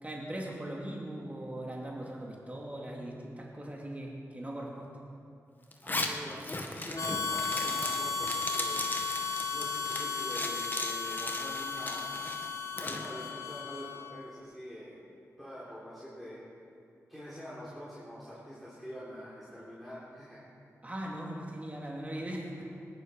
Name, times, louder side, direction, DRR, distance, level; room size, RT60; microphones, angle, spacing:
voice 1, 0.0-4.9 20.8-22.7, right 1 dB, 25° right, -2 dB, 2.5 m, -39 dB
Zipper (clothing), 5.7-13.1, left 2 dB, 35° left, 1.7 m, -37 dB
voice 2, 5.8-8.9 9.5-12.2 12.8-15.0 15.4-16.4 17.1-20.4, equal, ahead, -9 dB, 3.8 m, -45 dB
Harmonica, 7.0-14.2, left 4 dB, 65° left, 1.0 m, -35 dB
19.5 x 10.5 x 5.3 m, 2.6 s
cardioid pair, 60°, 6 cm